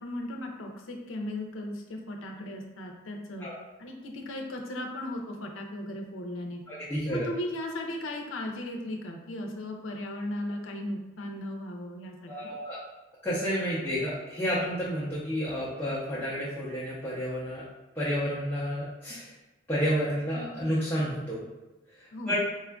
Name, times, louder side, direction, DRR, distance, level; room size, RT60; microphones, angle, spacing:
voice 1, 0.0-3.5 3.8-6.6 7.1-12.5 22.1-22.4, left 1 dB, 80° left, 1 dB, 0.5 m, -36 dB
voice 2, 6.7-7.3 12.3-12.8 13.2-17.6 18.0-19.3 19.7-21.5 22.0-22.4, equal, 10° left, -10 dB, 0.6 m, -30 dB
4.3 x 2.4 x 2.2 m, 1.1 s
head